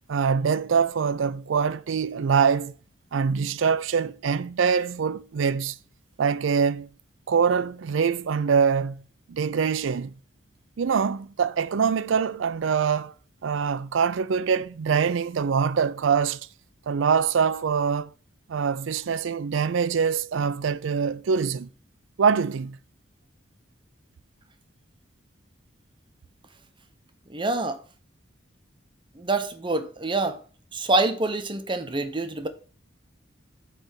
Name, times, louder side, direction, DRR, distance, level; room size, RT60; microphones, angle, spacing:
voice 1, 0.1-2.8 3.1-5.8 6.2-6.9 7.3-9.0 9.3-10.1 10.8-13.1 13.4-16.5 16.9-18.1 18.5-21.7 22.2-22.8, right 6 dB, 80° right, 0.4 m, -24 dB
voice 2, 27.3-27.8 29.2-30.4 30.7-32.5, right 2 dB, 25° right, 0.8 m, -26 dB
8.2 x 3.4 x 6.2 m
head